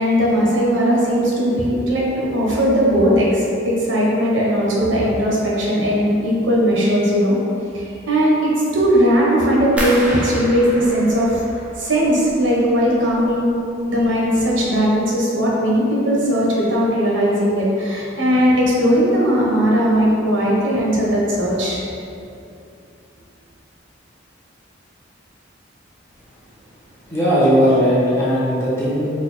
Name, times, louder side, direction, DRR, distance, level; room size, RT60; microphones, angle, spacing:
voice 1, 0.0-7.4 7.7-11.4 11.8-13.6 13.9-21.8, equal, 80° right, -4 dB, 0.7 m, -18 dB
sound 1, 9.8-12.6 12.9-13.6 14.0-14.4 14.8-15.0, equal, 5° right, 0.4 m, -30 dB
voice 2, 27.1-29.1, equal, 15° left, -9 dB, 0.8 m, -17 dB
3.9 x 2.2 x 3.1 m, 2.6 s
head